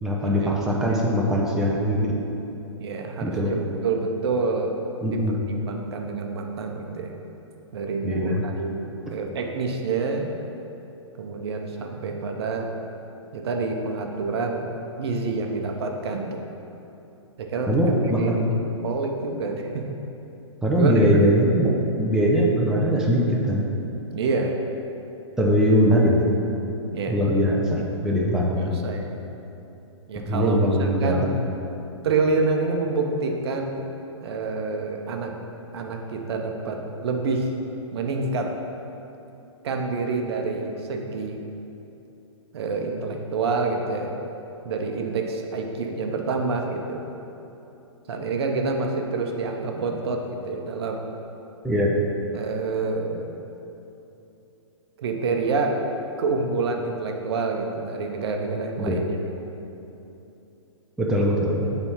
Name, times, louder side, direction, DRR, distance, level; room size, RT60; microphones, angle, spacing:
voice 1, 0.0-2.1 3.2-3.5 5.0-5.5 8.0-8.4 17.7-18.5 20.6-21.7 22.0-23.7 25.4-26.3 27.1-28.8 30.2-31.4 51.6-52.0 58.8-59.0 61.0-61.8, equal, 5° right, -3 dB, 0.6 m, -21 dB
voice 2, 2.8-4.8 5.1-5.4 5.7-7.2 7.7-10.3 11.2-12.7 13.3-14.7 15.0-16.6 17.4-18.4 18.8-20.0 20.8-21.1 24.1-24.5 26.9-27.1 28.6-29.2 30.1-31.4 32.0-33.8 34.2-35.4 35.7-37.5 37.9-38.5 39.6-41.4 42.5-44.1 44.6-47.0 48.1-51.0 52.3-53.3 55.0-55.8 56.2-59.1, right 3 dB, 55° right, 3 dB, 0.8 m, -27 dB
6.8 x 3.4 x 5.7 m, 2.9 s
hypercardioid pair, 130°, 16 cm